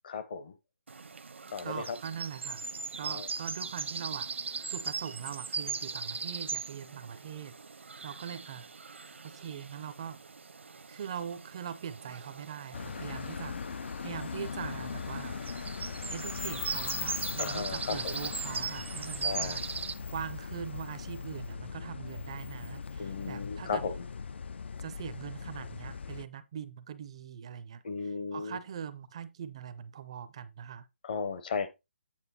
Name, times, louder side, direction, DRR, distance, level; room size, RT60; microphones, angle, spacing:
voice 1, 0.0-0.5 1.5-2.0 3.0-3.3 17.4-18.1 19.2-19.6 23.0-24.0 27.8-28.6 31.0-31.7, left 5 dB, 45° left, 0.9 m, -35 dB
sound 1, 0.9-19.9, right 5 dB, 75° right, 0.8 m, -39 dB
voice 2, 1.6-2.7 3.0-7.5 8.0-8.7 9.2-10.2 10.9-15.4 16.1-19.6 20.1-23.8 24.8-30.9, right 8 dB, 30° right, 0.4 m, -42 dB
sound 2, 12.7-26.2, left 5 dB, 65° left, 0.3 m, -39 dB
8.9 x 4.4 x 4.1 m
hypercardioid pair, 165°, 7 cm